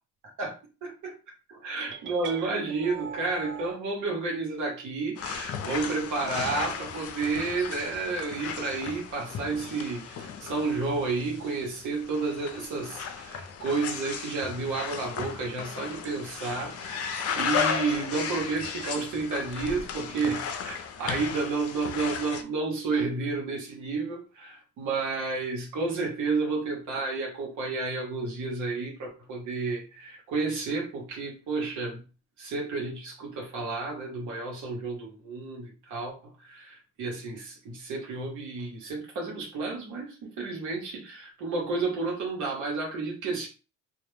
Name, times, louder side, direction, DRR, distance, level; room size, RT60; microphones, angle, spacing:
voice 1, 0.8-1.1 1.5-32.0 32.4-36.1 36.4-43.5, right 3 dB, 85° right, -1 dB, 0.9 m, -31 dB
sound 1, 1.8-3.8, right 6 dB, 40° right, 0.4 m, -40 dB
sound 2, 5.2-22.4, left 7 dB, 55° left, 0.4 m, -35 dB
2.2 x 2.0 x 3.1 m, 0.33 s
cardioid pair, 90°, 30 cm